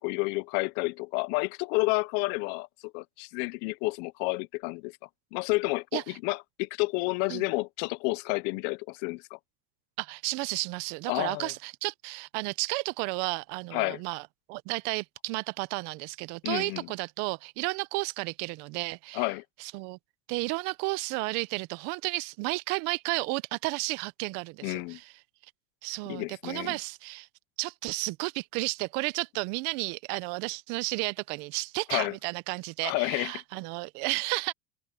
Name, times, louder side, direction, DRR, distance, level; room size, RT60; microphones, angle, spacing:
voice 1, 0.0-4.9 5.3-9.4 11.1-11.5 13.7-14.0 16.4-16.9 19.1-19.4 24.6-25.0 26.1-26.8 31.9-32.1 32.8-33.4, left 25 dB, 65° left, 0.7 m, -30 dB
voice 2, 10.0-14.2 14.5-19.2 19.6-20.0 20.3-25.0 25.8-27.3 27.6-34.5, right 26 dB, 65° right, 0.7 m, -32 dB
cardioid pair, 140°, 18 cm